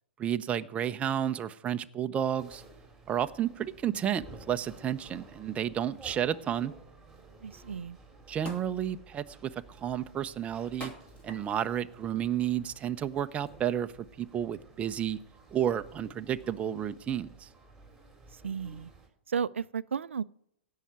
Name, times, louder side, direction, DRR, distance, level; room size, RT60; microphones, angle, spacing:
voice 1, 0.2-2.6 3.1-6.7 8.3-9.5 9.8-10.9 11.2-15.2 15.5-17.5, right 10 dB, 20° right, 0.6 m, -31 dB
sound 1, 2.4-19.1, right 3 dB, 5° right, 3.1 m, -54 dB
voice 2, 7.4-8.0 18.3-18.9 19.3-20.2, right 6 dB, 85° right, 0.4 m, -34 dB
sound 2, 7.6-7.7 8.5-8.8 9.4-9.8 10.8-11.7 12.4-12.6, equal, 20° left, 3.0 m, -44 dB
16.5 x 5.7 x 9.4 m
hypercardioid pair, 125°, 6 cm